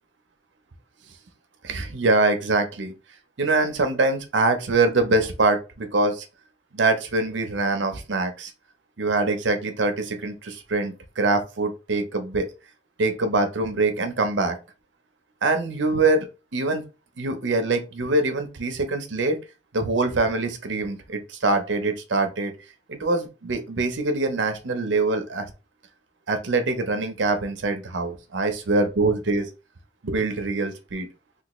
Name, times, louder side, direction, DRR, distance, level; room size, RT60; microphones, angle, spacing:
voice 1, 1.6-2.9 3.4-6.3 6.7-8.5 9.0-12.5 13.0-14.6 15.4-16.3 16.5-16.8 17.2-19.4 19.7-22.5 22.9-25.5 26.3-29.5 30.0-31.1, right 3 dB, 75° right, 0.6 m, -24 dB
3.3 x 2.3 x 3.0 m
head